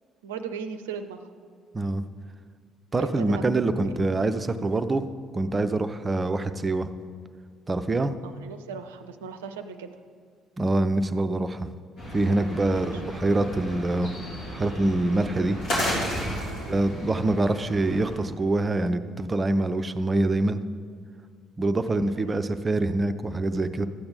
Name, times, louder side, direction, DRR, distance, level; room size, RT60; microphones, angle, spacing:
voice 1, 0.2-1.2 3.0-3.4 8.2-9.9 12.7-13.0 16.4-16.8 21.9-22.4, right 6 dB, 70° right, 9 dB, 0.5 m, -38 dB
voice 2, 2.9-5.1 5.3-6.9 7.7-8.1 10.6-11.7 12.1-14.1 14.5-15.6 16.7-20.6 21.6-23.9, right 2 dB, 25° right, 10 dB, 0.5 m, -25 dB
sound 1, 12.0-18.2, equal, 60° left, 3.2 m, -33 dB
13.0 x 8.7 x 3.9 m, 2.1 s
figure-of-eight pair, 50°, 0 cm